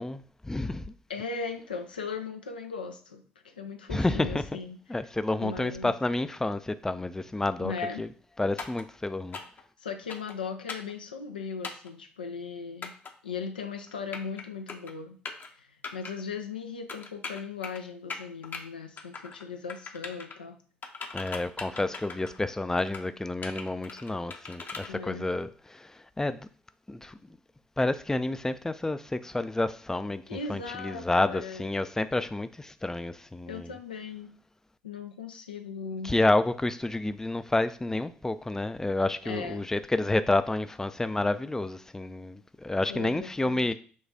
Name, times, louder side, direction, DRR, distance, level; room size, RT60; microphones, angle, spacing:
voice 1, 0.0-0.9 3.9-4.5 4.9-7.7 8.0-8.1 8.4-9.4 21.1-26.5 26.9-27.2 27.8-33.7 36.0-43.7, left 2 dB, 10° left, 0.3 m, -29 dB
voice 2, 1.1-4.8 5.4-5.9 7.6-8.0 9.8-12.9 13.2-15.2 15.6-20.6 24.9-25.3 30.3-31.7 33.5-34.3 34.8-36.1 39.2-39.6 42.9-43.7, left 5 dB, 90° left, 0.4 m, -38 dB
sound 1, 8.6-8.8 9.3-9.6 10.1-10.4 10.7-10.9 11.6-11.9 12.8-13.1 13.9-14.4 14.7-14.9 15.3-15.5 15.8-16.1 16.9-17.8 18.1-18.6 19.0-19.4 19.7-20.4 20.8-22.4 22.8-23.1 23.4-24.9, left 4 dB, 40° left, 0.7 m, -39 dB
6.1 x 2.3 x 2.7 m
hypercardioid pair, 50°, 5 cm